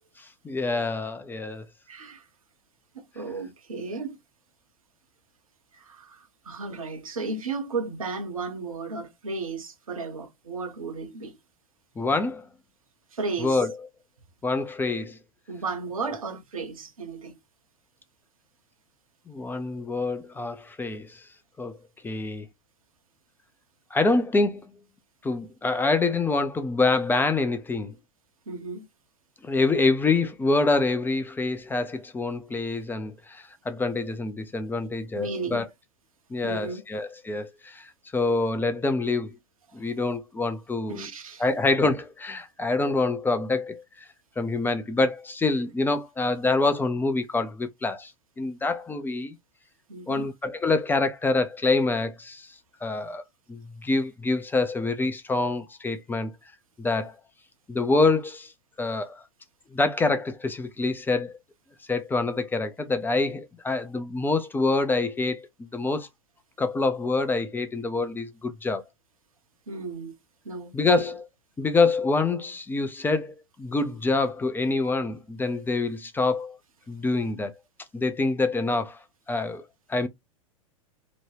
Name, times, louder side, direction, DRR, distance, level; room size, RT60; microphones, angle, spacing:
voice 1, 0.2-1.7 12.0-12.4 13.4-13.7 14.4-15.2 19.3-21.2 21.6-21.8 22.0-22.5 23.9-24.6 25.2-27.9 29.4-35.7 36.3-39.3 39.7-41.1 41.4-44.1 44.4-48.1 48.4-49.4 50.1-52.5 52.8-53.2 53.5-56.3 56.8-57.2 57.7-58.5 58.8-59.2 59.7-61.3 61.9-66.1 66.6-68.8 70.7-71.2 71.6-76.6 76.9-77.5 77.9-79.0 79.3-80.1, left 3 dB, 10° left, 0.4 m, -26 dB
voice 2, 1.9-2.2 2.9-4.2 5.7-11.4 13.1-13.6 15.5-17.3 28.5-28.9 35.1-35.7 36.4-36.8 40.9-41.4 49.9-50.3 69.7-70.1 70.4-71.0, right 4 dB, 85° right, 0.9 m, -34 dB
2.9 x 2.2 x 3.2 m
hypercardioid pair, 95°, 18 cm